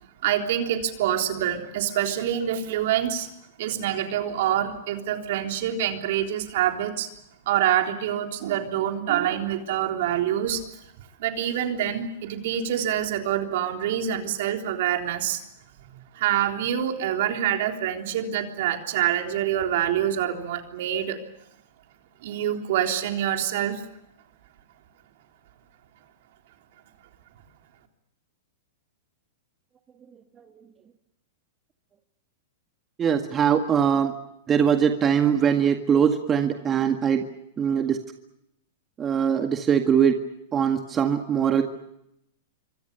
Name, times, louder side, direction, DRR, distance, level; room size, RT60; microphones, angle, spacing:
voice 1, 0.2-3.3 3.6-7.1 7.5-10.6 11.2-15.4 16.1-21.2 22.2-23.8, right 10 dB, 60° right, 4 dB, 3.6 m, -26 dB
voice 2, 33.0-34.1 34.5-37.2 37.6-38.0 39.0-40.2 40.5-41.6, right 8 dB, 25° right, 5 dB, 1.9 m, -21 dB
26.5 x 24.5 x 6.9 m, 0.81 s
hypercardioid pair, 110°, 0 cm